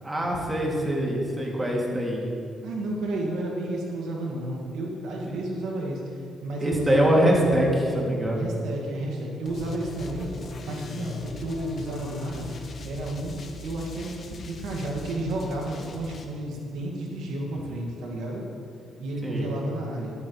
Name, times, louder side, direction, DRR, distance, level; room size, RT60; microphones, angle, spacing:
voice 1, 0.0-2.2 6.6-8.4 19.2-19.5, equal, 20° right, -3 dB, 2.6 m, -23 dB
voice 2, 2.6-7.0 8.3-10.3 10.6-12.5 12.8-18.4 19.0-20.1, right 1 dB, 80° right, -2 dB, 2.0 m, -32 dB
sound 1, 9.5-16.2, left 3 dB, 50° left, 1.4 m, -39 dB
13.0 x 12.0 x 3.2 m, 2.5 s
cardioid pair, 90°, 0 cm